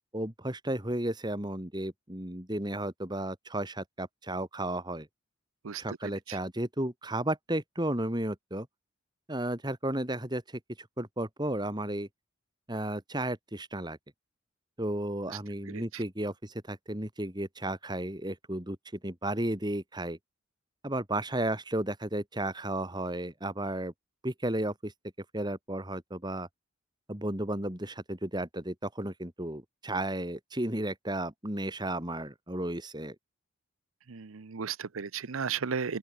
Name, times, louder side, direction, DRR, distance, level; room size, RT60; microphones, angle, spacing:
voice 1, 0.1-5.1 5.8-8.7 9.3-12.1 12.7-14.0 14.8-18.8 19.0-20.2 20.8-23.9 24.2-24.9 25.3-26.5 27.1-33.1, right 1 dB, 20° right, 2.9 m, -33 dB
voice 2, 5.6-6.0 6.3-6.4 15.7-15.8 34.1-36.0, right 6 dB, 85° right, 0.7 m, -34 dB
open air
head